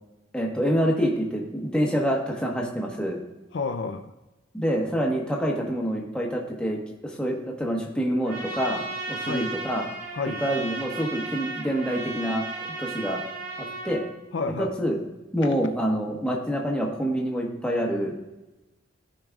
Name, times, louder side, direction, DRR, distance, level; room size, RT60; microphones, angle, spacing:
voice 1, 0.3-3.2 4.5-8.8 9.1-9.9 10.4-12.5 12.8-13.2 13.6-14.0 14.6-15.0 15.3-18.1, equal, 5° left, -2 dB, 1.2 m, -26 dB
voice 2, 3.5-4.1 9.2-9.5 10.1-10.4 14.3-14.7 15.4-15.6, left 4 dB, 65° left, 7 dB, 0.5 m, -30 dB
Trumpet, 8.2-14.0, right 3 dB, 50° right, 2.9 m, -35 dB
15.0 x 5.2 x 2.4 m, 1.0 s
head